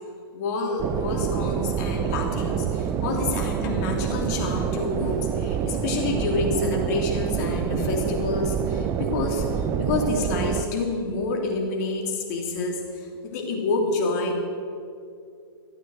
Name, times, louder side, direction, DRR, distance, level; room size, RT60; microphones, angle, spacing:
voice 1, 0.3-14.4, left 3 dB, 45° left, 0 dB, 3.0 m, -28 dB
sound 1, 0.8-10.6, right 8 dB, 20° right, 0.5 m, -27 dB
13.5 x 9.1 x 7.9 m, 2.4 s
hypercardioid pair, 140°, 13 cm